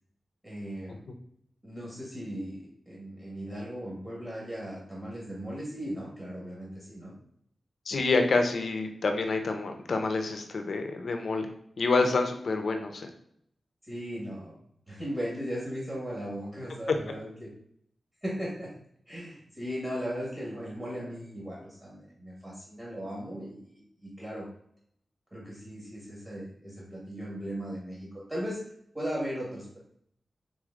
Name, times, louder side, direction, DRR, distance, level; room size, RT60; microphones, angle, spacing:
voice 1, 0.4-1.0 1.6-7.1 13.8-14.6 14.9-17.5 18.2-18.7 19.1-24.5 25.3-28.6 28.9-29.8, equal, 15° right, -5 dB, 1.7 m, -37 dB
voice 2, 7.9-11.5 11.8-13.1 16.9-17.0, left 3 dB, 70° left, 5 dB, 0.7 m, -27 dB
4.0 x 3.2 x 3.7 m, 0.69 s
wide cardioid pair, 85°, 0 cm